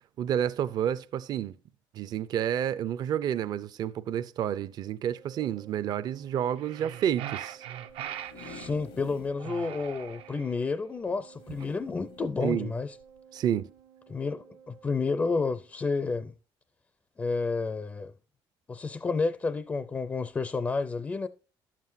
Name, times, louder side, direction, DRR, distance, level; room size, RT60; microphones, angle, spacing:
voice 1, 0.2-1.6 1.9-7.6 12.4-12.7 13.3-13.7, right 10 dB, 50° right, 0.5 m, -30 dB
Organ, 5.1-15.8, right 7 dB, 70° right, 1.2 m, -54 dB
sound 1, 6.6-8.7 9.4-10.6, right 11 dB, 85° right, 0.8 m, -40 dB
sound 2, 7.9-9.4 9.9-10.0 10.2-10.3 11.4-12.3 13.0-13.2, left 6 dB, 70° left, 0.8 m, -48 dB
voice 2, 8.4-13.0 14.1-16.3 17.2-18.1 18.7-21.3, left 4 dB, 20° left, 0.4 m, -30 dB
11.5 x 7.5 x 2.6 m
cardioid pair, 155°, 9 cm